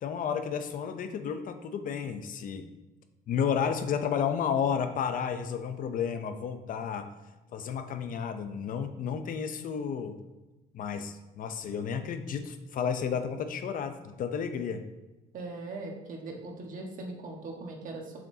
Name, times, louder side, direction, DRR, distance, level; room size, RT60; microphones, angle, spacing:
voice 1, 0.0-2.7 3.3-7.1 7.5-10.2 10.7-14.9, left 7 dB, 55° left, 8 dB, 0.6 m, -32 dB
voice 2, 15.3-18.2, right 2 dB, 55° right, 1 dB, 1.4 m, -40 dB
7.1 x 6.0 x 2.8 m, 1.1 s
cardioid pair, 110°, 17 cm